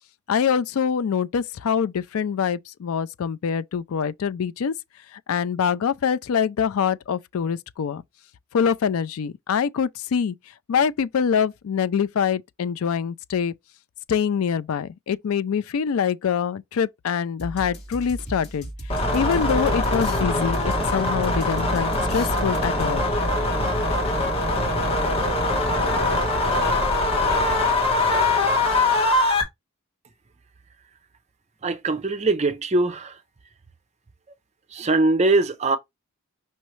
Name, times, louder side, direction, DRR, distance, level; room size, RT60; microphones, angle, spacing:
voice 1, 0.3-4.7 5.1-8.0 8.5-10.3 10.7-13.5 14.1-18.7 19.1-23.1, left 7 dB, 70° left, 0.4 m, -24 dB
sound 1, 17.4-23.3, right 1 dB, 50° left, 2.6 m, -36 dB
sound 2, 18.9-29.4, left 2 dB, 25° left, 1.3 m, -22 dB
voice 2, 31.6-33.2 34.7-35.8, right 2 dB, 30° right, 0.5 m, -21 dB
5.6 x 3.0 x 3.1 m
head